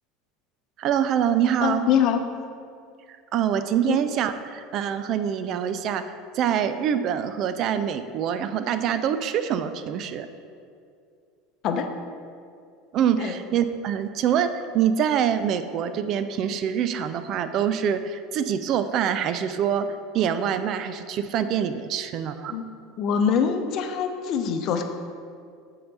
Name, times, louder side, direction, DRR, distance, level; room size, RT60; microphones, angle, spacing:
voice 1, 0.8-1.8 3.3-6.0 6.3-10.3 12.9-14.5 14.7-19.9 20.1-22.6, right 9 dB, 50° right, 11 dB, 0.4 m, -25 dB
voice 2, 1.6-2.2 3.9-4.0 11.6-11.9 13.2-13.3 22.5-22.6 23.0-24.8, left 7 dB, 50° left, 6 dB, 0.7 m, -24 dB
7.6 x 3.9 x 5.5 m, 2.3 s
hypercardioid pair, 85°, 0 cm